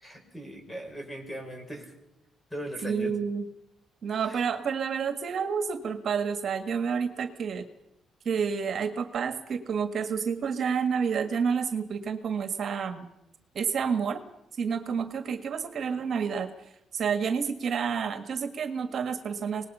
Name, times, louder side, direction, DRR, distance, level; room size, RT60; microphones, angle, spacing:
voice 1, 0.0-1.9 2.5-3.1 4.1-4.4, equal, 15° left, 4 dB, 5.9 m, -39 dB
voice 2, 2.8-3.5 4.0-7.6 8.3-13.1 13.6-14.2 14.6-16.5 16.9-19.7, right 6 dB, 55° right, 8 dB, 1.7 m, -29 dB
25.0 x 19.5 x 5.6 m, 0.88 s
cardioid pair, 90°, 0 cm